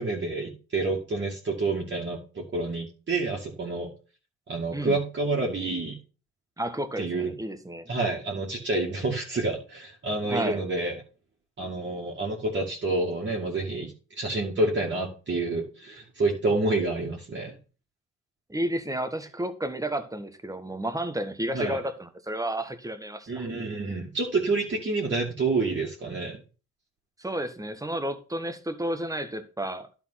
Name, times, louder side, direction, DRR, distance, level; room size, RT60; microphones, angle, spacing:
voice 1, 0.0-3.9 4.5-6.0 7.0-7.3 7.9-11.0 11.6-17.5 21.5-21.8 23.3-26.4, right 2 dB, 40° right, 2.2 m, -28 dB
voice 2, 6.6-7.9 10.3-10.6 18.5-23.5 27.2-29.9, right 1 dB, 10° right, 1.3 m, -31 dB
11.0 x 4.3 x 5.7 m
cardioid pair, 90°, 30 cm